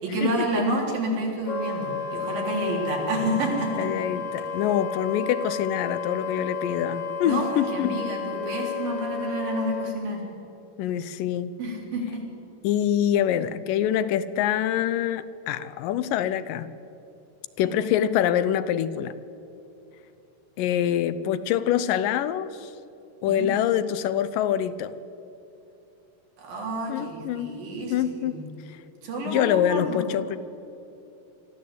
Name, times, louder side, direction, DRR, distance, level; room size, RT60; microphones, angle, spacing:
voice 1, 0.0-3.7 7.2-10.2 11.6-12.2 23.3-23.5 26.4-28.4 29.0-30.0, right 1 dB, 85° right, -1 dB, 5.4 m, -29 dB
Wind instrument woodwind instrument, 1.4-10.0, left 5 dB, 35° left, 2.4 m, -32 dB
voice 2, 3.8-8.0 10.8-11.6 12.6-16.7 17.6-19.1 20.6-22.7 23.2-24.9 26.9-27.6 27.9-28.5 29.3-30.4, left 10 dB, 80° left, 14 dB, 2.3 m, -25 dB
23.5 x 13.5 x 8.3 m, 2.9 s
omnidirectional pair, 4.0 m